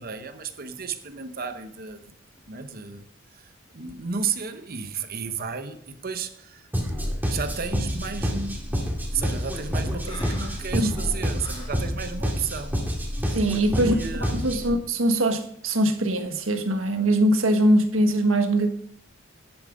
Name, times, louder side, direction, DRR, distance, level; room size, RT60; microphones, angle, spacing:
voice 1, 0.0-2.1 2.4-6.7 7.3-12.8 13.4-14.5, right 6 dB, 50° right, 0.9 m, -33 dB
sound 1, 6.7-14.7, equal, 10° right, 2.3 m, -28 dB
Breathing, 10.0-11.8, left 1 dB, 25° left, 2.6 m, -40 dB
voice 2, 13.3-14.0 14.2-18.7, right 1 dB, 80° right, 1.5 m, -22 dB
10.5 x 8.8 x 5.2 m
head